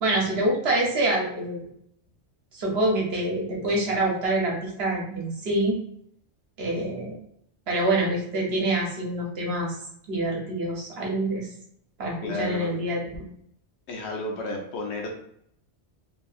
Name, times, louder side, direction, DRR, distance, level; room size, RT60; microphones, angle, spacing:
voice 1, 0.0-1.7 2.5-5.8 6.6-7.2 7.7-9.8 10.1-11.5 12.0-13.3, right 1 dB, 65° right, -2 dB, 1.0 m, -26 dB
voice 2, 12.2-12.8 13.9-15.1, left 2 dB, 75° left, 1 dB, 1.0 m, -32 dB
2.7 x 2.7 x 2.4 m, 0.69 s
omnidirectional pair, 1.2 m